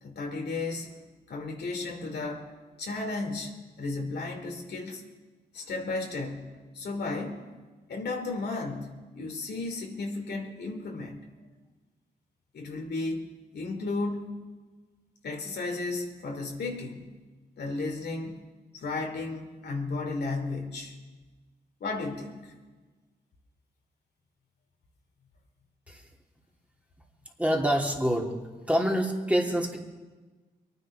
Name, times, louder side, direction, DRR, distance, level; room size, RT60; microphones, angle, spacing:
voice 1, 0.0-1.0 1.3-2.5 2.8-5.0 5.5-7.5 7.9-11.3 12.5-14.3 15.2-17.1 17.6-18.4 18.7-21.0 21.8-22.5, left 3 dB, 70° left, 2 dB, 2.7 m, -34 dB
voice 2, 27.4-28.3 28.7-29.8, equal, 5° right, 0 dB, 2.9 m, -26 dB
23.0 x 9.8 x 4.9 m, 1.3 s
supercardioid pair, 50°, 18 cm